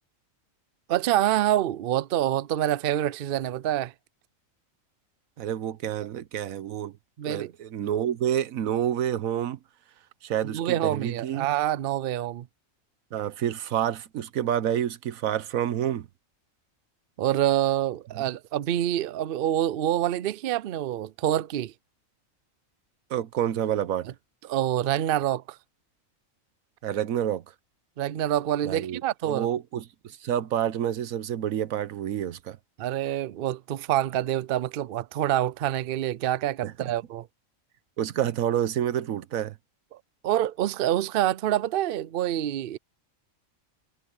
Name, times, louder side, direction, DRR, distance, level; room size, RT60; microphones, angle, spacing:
voice 1, 0.9-3.9 7.2-7.5 10.5-12.5 17.2-21.7 24.5-25.6 28.0-29.5 32.8-37.3 40.2-42.8, right 12 dB, 60° right, 0.6 m, -26 dB
voice 2, 5.4-7.0 7.3-9.6 10.2-11.5 13.1-16.1 18.1-18.2 23.1-24.1 26.8-27.4 28.6-32.6 36.6-36.9 38.0-39.6, right 10 dB, 80° right, 1.2 m, -28 dB
omnidirectional pair, 1.4 m